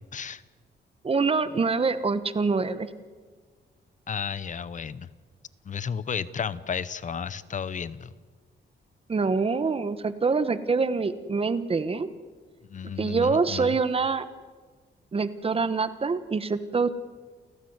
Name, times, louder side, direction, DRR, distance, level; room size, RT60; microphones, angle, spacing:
voice 1, 0.1-0.4 4.1-5.1 5.6-8.1 12.7-13.8, left 7 dB, 40° left, 17 dB, 0.8 m, -33 dB
voice 2, 1.0-2.9 9.1-12.1 13.0-14.2 15.1-16.9, right 4 dB, 30° right, 12 dB, 1.1 m, -25 dB
29.0 x 15.0 x 8.0 m, 1.5 s
wide cardioid pair, 140°, 20 cm